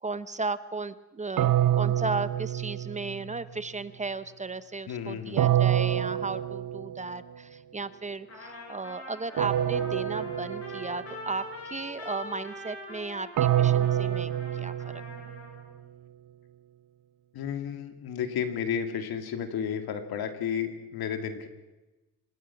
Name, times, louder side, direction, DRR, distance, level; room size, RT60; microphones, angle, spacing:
voice 1, 0.0-15.0, right 3 dB, 20° right, 15 dB, 0.6 m, -35 dB
sound 1, 1.4-3.4 5.4-7.2 9.4-11.2 13.4-15.6, right 11 dB, 55° right, 0.6 m, -27 dB
voice 2, 4.9-5.6 17.3-21.5, left 8 dB, 80° left, 7 dB, 2.6 m, -32 dB
Trumpet, 8.3-15.7, left 2 dB, 40° left, 7.8 m, -43 dB
26.5 x 19.5 x 6.0 m, 1.1 s
cardioid pair, 130°, 37 cm